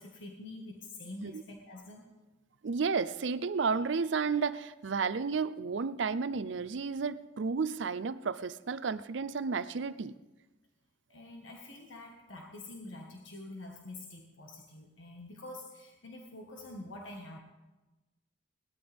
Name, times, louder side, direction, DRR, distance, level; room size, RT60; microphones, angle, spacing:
voice 1, 0.0-2.1 11.1-17.4, left 2 dB, 85° left, 1 dB, 1.5 m, -46 dB
voice 2, 2.6-10.1, right 5 dB, 70° right, 14 dB, 0.5 m, -32 dB
18.5 x 12.5 x 3.5 m, 1.1 s
head